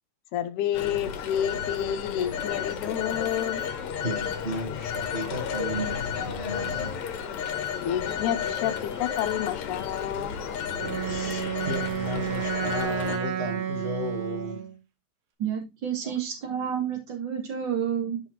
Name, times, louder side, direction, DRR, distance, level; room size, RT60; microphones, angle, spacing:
voice 1, 0.3-3.6 7.8-10.6, left 10 dB, 85° left, 2.2 m, -29 dB
Telephone, 0.7-13.2, left 7 dB, 70° left, 2.3 m, -32 dB
voice 2, 3.5-7.0 10.7-14.7 16.0-16.1, left 1 dB, 25° right, 1.4 m, -35 dB
Wind instrument woodwind instrument, 10.8-14.8, right 9 dB, 90° right, 2.5 m, -31 dB
voice 3, 15.4-18.2, right 8 dB, 40° right, 2.6 m, -30 dB
10.0 x 5.6 x 3.1 m
omnidirectional pair, 3.4 m